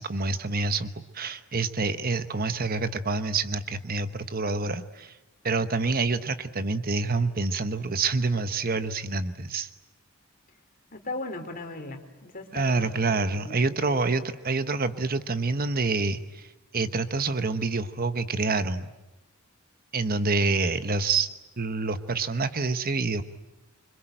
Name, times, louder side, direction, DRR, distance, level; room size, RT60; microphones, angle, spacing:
voice 1, 0.0-5.2 5.4-9.7 12.5-16.5 16.7-18.9 19.9-21.3 21.6-23.2, right 3 dB, 45° right, 11 dB, 1.1 m, -27 dB
voice 2, 10.9-14.0, left 2 dB, 40° left, 5 dB, 3.5 m, -38 dB
26.5 x 25.0 x 9.0 m, 1.0 s
head